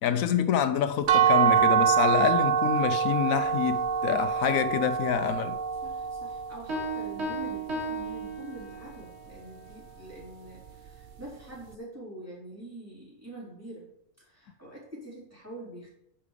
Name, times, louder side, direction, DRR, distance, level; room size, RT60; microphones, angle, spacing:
voice 1, 0.0-5.6, left 8 dB, 80° left, 1.1 m, -27 dB
sound 1, 1.1-6.9, right 7 dB, 70° right, 0.4 m, -25 dB
voice 2, 5.8-13.9 14.2-15.9, right 1 dB, 10° right, 4.2 m, -45 dB
Piano, 6.7-9.1, right 2 dB, 55° right, 1.7 m, -34 dB
9.8 x 5.8 x 5.1 m
omnidirectional pair, 1.4 m